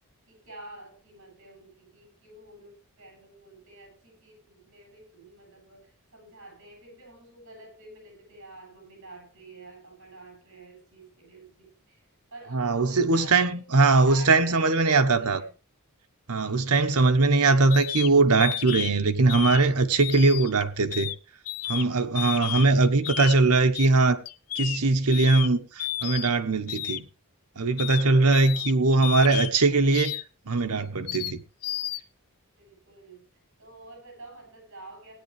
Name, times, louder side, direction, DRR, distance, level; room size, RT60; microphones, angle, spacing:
voice 1, 0.3-15.5 28.3-28.8 32.6-33.3 33.6-35.2, right 2 dB, 60° right, 7.7 m, -48 dB
voice 2, 12.5-15.4 16.3-21.1 21.7-24.2 24.5-27.1 27.6-30.1 30.5-31.4, right 3 dB, 90° right, 1.2 m, -21 dB
sound 1, 17.7-18.1 18.4-18.9 19.3-19.6 20.0-20.6 20.9-21.2 21.5-21.8 22.2-22.7 23.0-23.4 23.7-23.9 24.3-24.8 25.1-25.5 25.8-26.3 26.7-27.0 27.8-28.0 28.3-28.7 29.0-29.5 29.9-30.2 31.1-31.3 31.6-32.0, left 13 dB, 90° left, 0.7 m, -32 dB
16.5 x 9.8 x 3.3 m
head